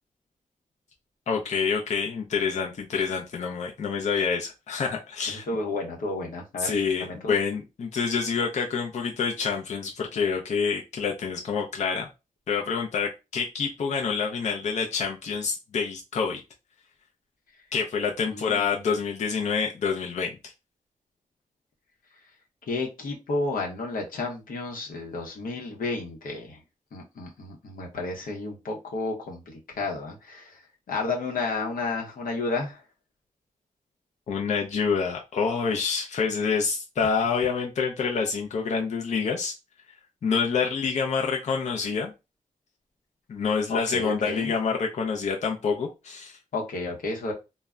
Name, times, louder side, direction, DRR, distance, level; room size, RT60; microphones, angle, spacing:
voice 1, 1.3-5.5 6.6-12.1 12.5-16.4 17.7-20.4 34.3-39.5 40.2-42.1 43.3-46.4, left 5 dB, 55° left, 0.5 m, -27 dB
voice 2, 5.3-6.7 7.0-7.3 18.3-18.6 22.7-26.6 26.9-30.6 30.9-32.8 43.7-44.5 46.5-47.3, left 3 dB, 90° left, 0.8 m, -32 dB
2.1 x 2.1 x 3.5 m
wide cardioid pair, 125°, 14 cm